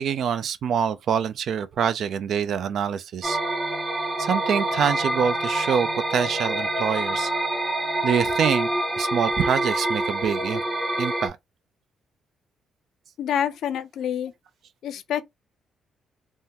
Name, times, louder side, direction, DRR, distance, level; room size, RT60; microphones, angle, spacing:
voice 1, 0.0-3.4 4.2-7.3 8.0-8.7 9.0-10.6 11.0-11.4, right 7 dB, 65° right, 0.4 m, -25 dB
sound 1, 3.2-11.3, right 1 dB, 20° right, 0.9 m, -26 dB
voice 2, 13.2-14.3 14.8-15.2, left 9 dB, 75° left, 0.5 m, -27 dB
3.5 x 2.1 x 2.8 m
cardioid pair, 90°, 0 cm